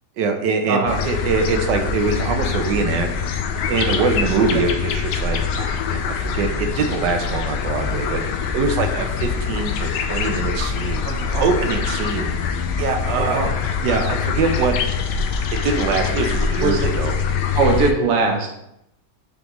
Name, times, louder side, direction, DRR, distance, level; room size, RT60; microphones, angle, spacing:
voice 1, 0.2-3.1 3.7-8.2 8.5-11.1 11.4-12.3 12.8-13.4 13.8-14.7 15.6-17.1, right 5 dB, 90° right, 5 dB, 1.3 m, -23 dB
voice 2, 0.7-1.0 4.5-4.6 11.0-11.7 13.1-13.5 16.6-16.9 17.5-18.5, right 4 dB, 60° right, 2 dB, 1.3 m, -21 dB
sound 1, 0.9-17.9, left 6 dB, 85° left, 1.2 m, -24 dB
8.8 x 3.5 x 3.0 m, 0.81 s
omnidirectional pair, 1.8 m